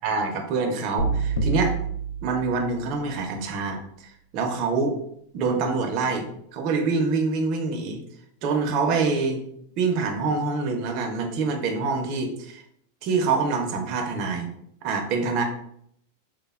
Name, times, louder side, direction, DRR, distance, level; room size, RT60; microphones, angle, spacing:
voice 1, 0.0-1.7 2.2-3.8 4.3-5.0 5.3-6.3 6.5-8.0 8.4-9.4 9.8-12.6 13.0-14.5 14.8-15.4, right 4 dB, 45° right, 3 dB, 0.5 m, -25 dB
sound 1, 1.0-3.1, right 4 dB, 80° left, 0.4 m, -27 dB
3.2 x 2.1 x 2.3 m, 0.70 s
supercardioid pair, 135°, 0 cm